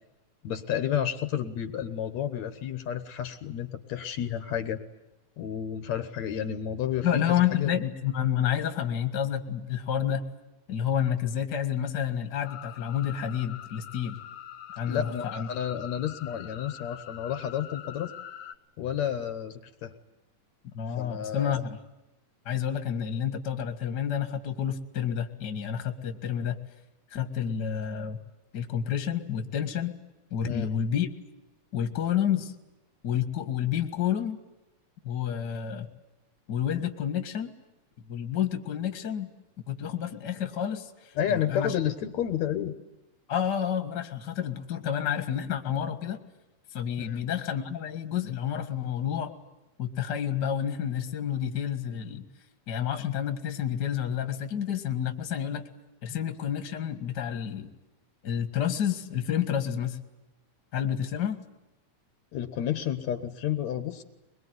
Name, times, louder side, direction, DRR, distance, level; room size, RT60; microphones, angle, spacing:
voice 1, 0.4-4.8 5.4-7.7 14.9-18.1 18.8-19.9 21.0-21.6 30.4-30.7 41.2-42.8 47.1-47.2 56.1-56.2 62.3-64.0, left 9 dB, 70° left, 10 dB, 2.5 m, -31 dB
voice 2, 7.0-10.2 10.7-14.2 14.8-15.5 20.7-21.8 22.5-26.6 27.1-28.2 28.5-29.9 30.3-31.1 31.7-32.5 33.0-34.4 35.0-35.9 36.5-37.5 38.1-39.3 39.7-41.7 43.3-46.2 46.7-49.3 49.8-52.2 52.7-55.7 56.0-57.7 58.2-60.0 60.7-61.4, left 9 dB, 40° left, 8 dB, 2.2 m, -29 dB
sound 1, 12.4-18.6, left 11 dB, 85° left, 3.2 m, -44 dB
23.5 x 22.0 x 9.6 m, 1.0 s
omnidirectional pair, 3.4 m